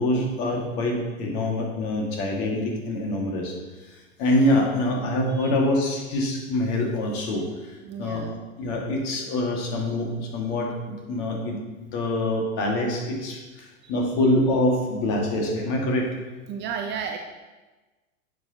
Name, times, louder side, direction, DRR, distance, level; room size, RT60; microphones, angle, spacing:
voice 1, 0.0-3.5 3.9-8.2 8.6-16.1, left 1 dB, 50° left, 0 dB, 2.2 m, -25 dB
voice 2, 7.8-8.4 13.8-13.9 16.5-17.2, right 7 dB, 25° right, 4 dB, 0.5 m, -33 dB
10.0 x 6.3 x 3.0 m, 1.2 s
hypercardioid pair, 100°, 42 cm